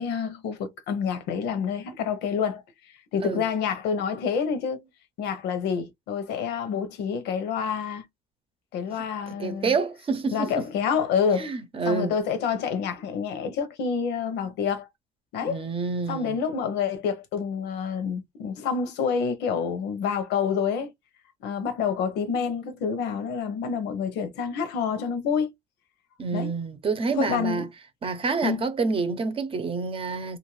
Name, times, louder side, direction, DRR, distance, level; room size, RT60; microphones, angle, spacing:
voice 1, 0.0-2.6 3.1-4.9 5.2-8.0 8.7-9.7 10.3-11.5 11.8-14.9 15.3-15.6 16.1-20.9 21.4-25.5 26.3-26.5 27.2-27.6 28.4-28.6, left 6 dB, 90° left, 0.8 m, -28 dB
voice 2, 9.4-10.7 11.3-12.1 15.4-16.4 26.2-27.7 28.0-30.4, right 4 dB, 35° right, 0.7 m, -28 dB
2.5 x 2.4 x 3.1 m
cardioid pair, 110°, 17 cm